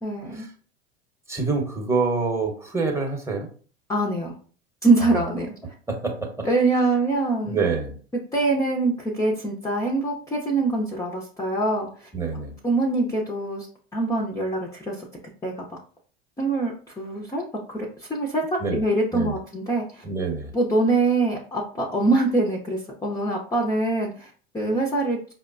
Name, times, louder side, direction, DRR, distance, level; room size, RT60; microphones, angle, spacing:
voice 1, 0.0-0.5 3.9-4.4 4.8-5.5 6.4-7.6 8.3-12.1 12.6-15.1 15.4-15.8 16.4-20.0 20.5-25.2, right 2 dB, 10° left, -2 dB, 0.6 m, -24 dB
voice 2, 1.3-3.5 5.0-5.3 5.9-6.5 6.7-6.8 7.4-7.9 12.1-12.5 18.6-18.8 19.1-19.4 20.0-20.5, right 4 dB, 10° right, 1 dB, 1.0 m, -26 dB
5.0 x 2.1 x 2.5 m, 0.42 s
hypercardioid pair, 80°, 32 cm